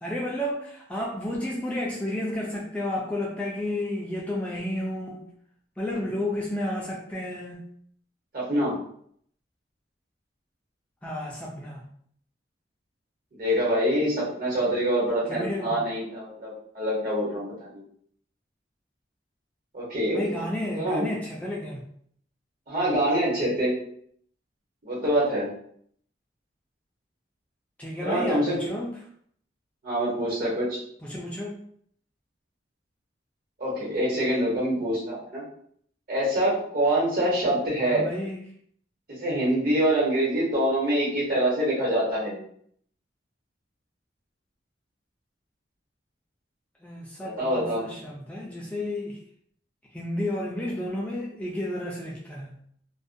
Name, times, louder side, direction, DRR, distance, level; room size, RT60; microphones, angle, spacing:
voice 1, 0.0-5.3 5.8-7.7 11.0-11.8 15.3-15.8 20.1-21.8 27.8-29.0 31.0-31.6 37.8-38.4 46.8-49.2 49.9-52.5, left 1 dB, 5° left, -3 dB, 0.3 m, -31 dB
voice 2, 8.3-8.8 13.3-17.8 19.7-20.2 20.7-21.1 22.7-23.7 24.8-25.5 28.0-28.5 29.8-30.8 33.6-35.4 36.1-38.0 39.1-42.4 47.2-47.9, right 1 dB, 55° right, -5 dB, 1.2 m, -25 dB
2.4 x 2.1 x 2.6 m, 0.64 s
head